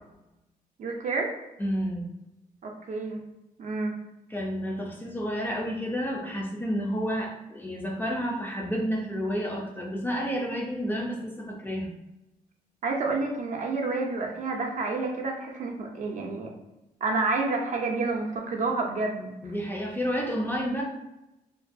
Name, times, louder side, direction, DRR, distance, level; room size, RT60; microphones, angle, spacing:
voice 1, 0.8-1.3 2.6-3.2 3.6-4.0 12.8-16.5 17.0-19.4, right 3 dB, 55° right, 1 dB, 0.5 m, -29 dB
voice 2, 1.6-2.1 4.3-11.9 19.4-20.8, equal, 15° left, -1 dB, 0.4 m, -30 dB
2.5 x 2.3 x 2.5 m, 0.95 s
cardioid pair, 125°, 15 cm